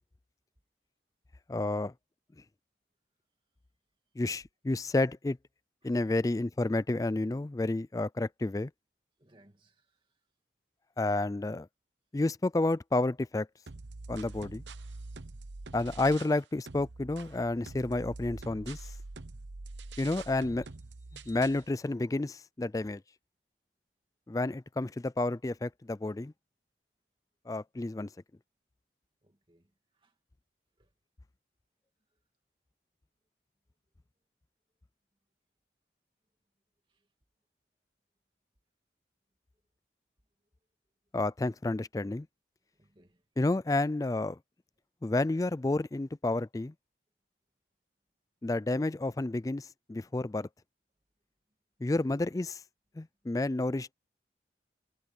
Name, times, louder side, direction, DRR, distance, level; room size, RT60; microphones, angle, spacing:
voice 1, 1.5-1.9 4.2-5.4 5.8-8.7 11.0-11.7 12.1-13.5 14.1-14.6 15.7-18.9 20.0-20.7 21.3-23.0 24.3-26.3 27.5-28.1 41.1-42.3 43.4-44.4 45.0-46.7 48.4-50.5 51.8-52.6 53.0-53.9, left 2 dB, 20° left, 0.3 m, -30 dB
voice 2, 9.2-10.2 29.2-30.2 30.8-30.9 32.1-32.2 36.9-37.1 42.7-43.2, right 1 dB, 30° right, 2.4 m, -66 dB
sound 1, 13.7-16.4 16.7-21.7, right 3 dB, 90° right, 1.0 m, -45 dB
head